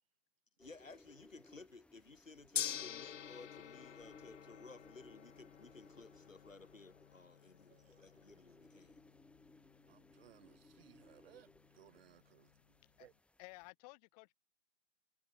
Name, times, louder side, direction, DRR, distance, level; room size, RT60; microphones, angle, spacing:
Fireworks, 0.5-5.8, right 5 dB, 70° right, 7.9 m, -83 dB
voice 1, 0.6-9.0, left 3 dB, 85° left, 3.2 m, -57 dB
sound 1, 0.6-13.7, left 2 dB, 5° left, 2.1 m, -64 dB
Gong, 2.5-12.8, left 9 dB, 70° left, 0.7 m, -48 dB
voice 2, 7.7-8.2 9.9-12.5 13.0-13.1, right 11 dB, 50° right, 2.6 m, -63 dB
voice 3, 13.4-14.4, left 26 dB, 30° left, 2.5 m, -55 dB
figure-of-eight pair, 125°, 38 cm